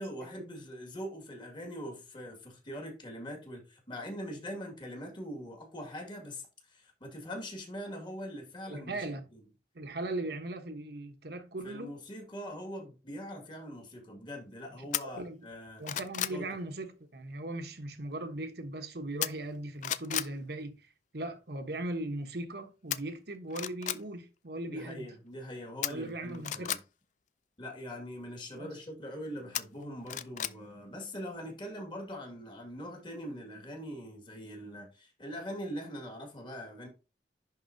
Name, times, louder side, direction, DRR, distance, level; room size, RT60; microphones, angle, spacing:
voice 1, 0.0-9.1 9.3-9.4 11.6-15.9 16.3-16.4 24.7-26.8 27.6-36.9, equal, 25° left, 2.0 m, -42 dB
voice 2, 8.7-9.3 9.7-12.0 14.8-15.5 15.8-20.9 21.1-25.1 25.9-26.8 28.6-28.8, right 1 dB, 60° right, 1.1 m, -39 dB
sound 1, 14.9-15.0 15.5-16.4 19.2-19.6 19.8-20.3 22.9-23.0 23.5-24.0 25.8-26.8 29.5-30.6 30.9-31.0, left 11 dB, 45° left, 0.4 m, -33 dB
11.0 x 4.1 x 2.7 m
head